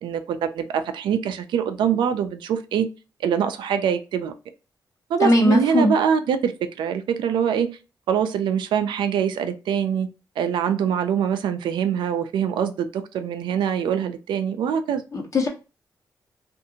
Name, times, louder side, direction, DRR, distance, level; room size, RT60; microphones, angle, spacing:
voice 1, 0.0-2.9 3.2-4.3 5.1-6.5 6.8-7.8 8.1-10.1 10.4-15.0, right 8 dB, 90° right, 0.4 m, -24 dB
voice 2, 5.2-5.9 15.1-15.5, left 1 dB, 45° left, 0.9 m, -19 dB
2.6 x 2.5 x 2.7 m
cardioid pair, 75°, 8 cm